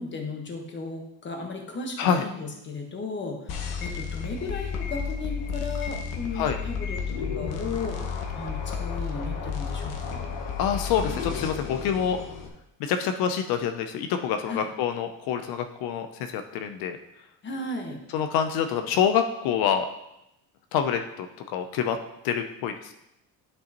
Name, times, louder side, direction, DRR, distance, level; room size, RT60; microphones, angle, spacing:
voice 1, 0.0-8.0 8.3-10.3 14.5-14.7 17.4-18.0, left 3 dB, 30° left, 2 dB, 1.3 m, -35 dB
sound 1, 3.5-12.5, left 6 dB, 65° left, 1.2 m, -32 dB
voice 2, 10.6-12.2 12.8-17.0 18.1-19.9 20.7-22.0 22.2-22.9, left 8 dB, 85° left, 7 dB, 0.6 m, -26 dB
9.6 x 5.5 x 2.9 m, 0.85 s
cardioid pair, 135°, 35 cm